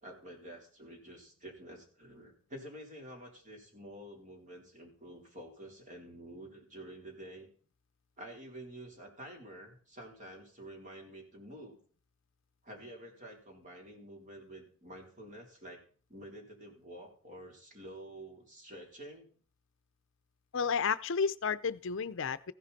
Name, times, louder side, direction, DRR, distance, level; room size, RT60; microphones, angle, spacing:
voice 1, 0.0-7.5 8.2-11.8 12.6-15.8 16.1-19.3, right 1 dB, 35° right, 1 dB, 4.0 m, -49 dB
voice 2, 20.5-22.5, left 6 dB, 65° left, 14 dB, 0.6 m, -32 dB
15.0 x 11.0 x 4.2 m, 0.43 s
head